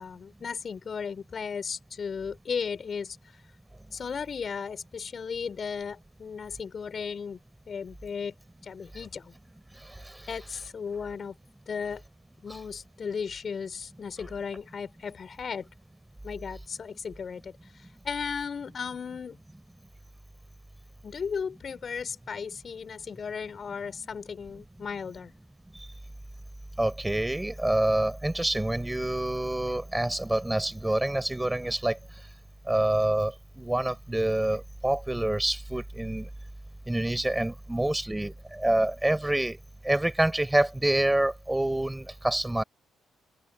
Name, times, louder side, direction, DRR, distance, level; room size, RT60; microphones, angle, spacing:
voice 1, 0.0-3.2 3.9-7.4 7.7-8.3 8.6-9.3 10.3-11.3 11.7-12.0 12.4-15.7 16.2-17.5 18.0-19.4 21.0-25.3, left 6 dB, 45° left, 6.3 m, -35 dB
voice 2, 26.8-32.0 32.7-36.3 36.9-39.6 39.8-42.6, right 1 dB, 10° right, 6.6 m, -27 dB
open air
cardioid pair, 90°, 0 cm